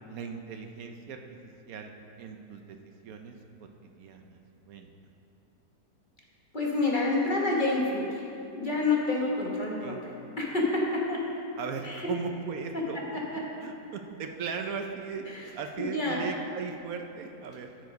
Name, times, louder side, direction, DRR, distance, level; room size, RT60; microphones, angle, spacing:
voice 1, 0.1-1.2 1.7-1.9 2.2-2.8 3.0-3.4 4.0-4.4 4.7-4.9 9.8-10.0 11.6-13.0 13.6-15.2 15.5-17.7, right 5 dB, 70° right, 5 dB, 1.1 m, -37 dB
voice 2, 6.5-8.3 8.5-11.2 11.8-12.1 12.7-13.2 15.3-15.5 15.8-16.2, left 2 dB, 35° left, -3 dB, 1.3 m, -28 dB
13.5 x 4.8 x 5.2 m, 2.8 s
omnidirectional pair, 1.6 m